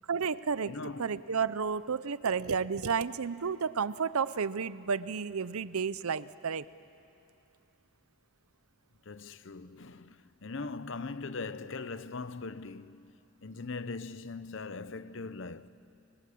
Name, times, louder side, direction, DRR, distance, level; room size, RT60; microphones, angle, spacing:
voice 1, 0.1-0.7 1.0-6.7, right 6 dB, 85° right, 0.7 m, -31 dB
voice 2, 0.7-1.2 9.1-13.1 13.4-15.7, left 3 dB, 60° left, 0.8 m, -40 dB
29.5 x 23.5 x 8.5 m
head